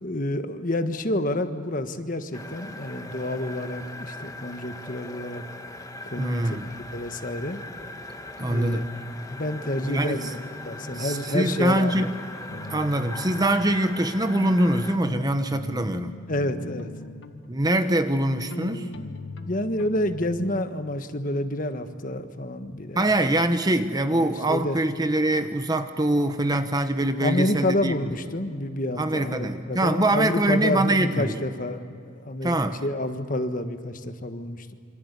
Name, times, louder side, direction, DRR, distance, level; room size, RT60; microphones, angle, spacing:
voice 1, 0.0-5.4 6.0-7.6 8.4-8.8 9.3-12.1 16.3-16.9 19.4-23.1 24.1-24.8 27.2-34.7, left 1 dB, 40° left, 8 dB, 1.4 m, -29 dB
sound 1, 2.3-15.0, left 2 dB, 15° left, 1.4 m, -40 dB
voice 2, 6.2-6.7 8.4-8.9 9.8-10.3 11.0-12.2 12.7-16.1 17.5-18.9 22.9-27.9 29.0-31.4 32.4-32.8, right 1 dB, 20° right, 9 dB, 1.0 m, -24 dB
sound 2, 12.5-20.6, left 1 dB, 60° left, 1.7 m, -38 dB
27.5 x 25.5 x 8.3 m, 2.4 s
head